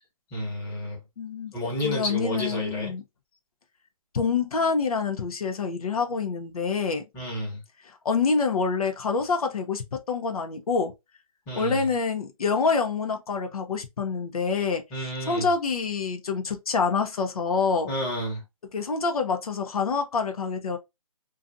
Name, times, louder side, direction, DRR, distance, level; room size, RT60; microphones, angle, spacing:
voice 1, 0.3-1.0 1.5-2.9 7.1-7.6 11.5-11.9 14.9-15.5 17.9-18.4, equal, 15° left, 0.9 m, -30 dB
voice 2, 1.2-1.5 1.8-3.0 4.1-7.0 7.8-10.9 11.5-14.8 15.2-17.9 18.7-20.8, left 5 dB, 85° left, 0.7 m, -26 dB
2.6 x 2.4 x 2.5 m
hypercardioid pair, 165°, 18 cm